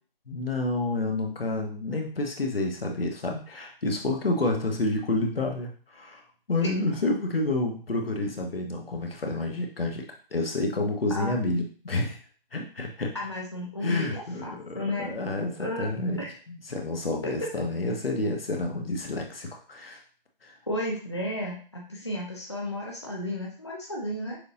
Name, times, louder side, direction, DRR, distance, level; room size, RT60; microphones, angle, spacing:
voice 1, 0.3-6.2 6.5-10.0 10.3-12.2 12.5-13.1 13.8-20.0 20.4-20.5, left 2 dB, 80° left, 1 dB, 1.3 m, -29 dB
voice 2, 11.2-11.5 13.1-15.1 15.6-15.9 16.2-16.3 17.2-17.3 20.7-24.4, left 1 dB, 30° left, -2 dB, 0.6 m, -33 dB
6.5 x 2.6 x 2.8 m, 0.41 s
figure-of-eight pair, 180°, 29 cm